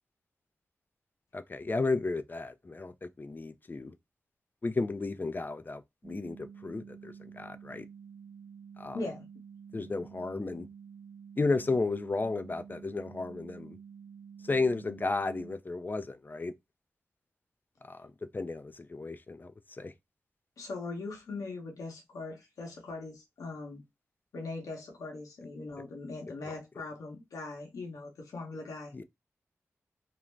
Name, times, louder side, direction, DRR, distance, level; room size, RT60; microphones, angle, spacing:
voice 1, 1.3-3.9 4.6-7.9 8.8-9.0 9.7-10.7 11.4-13.8 14.5-16.5 17.9-19.5 19.8-19.9 28.9-29.0, left 3 dB, 35° left, 0.4 m, -33 dB
sound 1, 6.0-15.5, right 7 dB, 10° right, 0.8 m, -50 dB
voice 2, 8.9-9.3 20.6-23.8 24.3-28.9, left 3 dB, 85° left, 0.9 m, -40 dB
2.5 x 2.1 x 3.1 m
cardioid pair, 45°, 6 cm